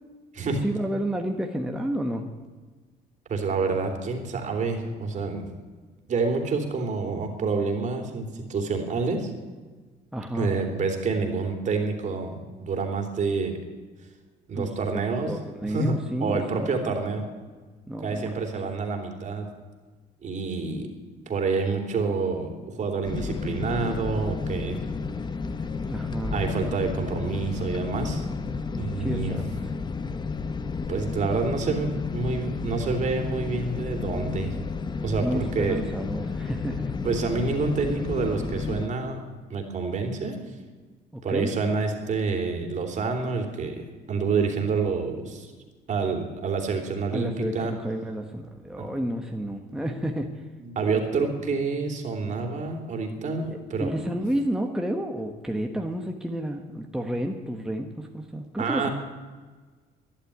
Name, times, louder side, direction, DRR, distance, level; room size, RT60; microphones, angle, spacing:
voice 1, 0.6-2.3 10.1-10.5 14.5-16.9 17.9-18.3 25.9-26.4 29.0-29.4 35.2-36.9 41.1-41.5 47.1-50.3 53.5-58.9, right 1 dB, 5° right, 3 dB, 1.2 m, -31 dB
voice 2, 3.3-5.4 6.1-9.3 10.3-13.6 14.5-15.3 15.6-17.2 18.0-19.5 20.2-20.9 21.3-24.8 26.3-28.3 28.8-29.4 30.9-34.5 35.0-35.8 37.0-39.2 39.5-40.4 41.2-45.5 45.9-47.7 48.8-48.9 50.6-53.9 58.6-58.9, right 4 dB, 45° right, 4 dB, 3.1 m, -28 dB
sound 1, 23.0-38.9, left 4 dB, 25° left, 0.9 m, -32 dB
12.0 x 11.5 x 9.8 m, 1.4 s
cardioid pair, 110°, 17 cm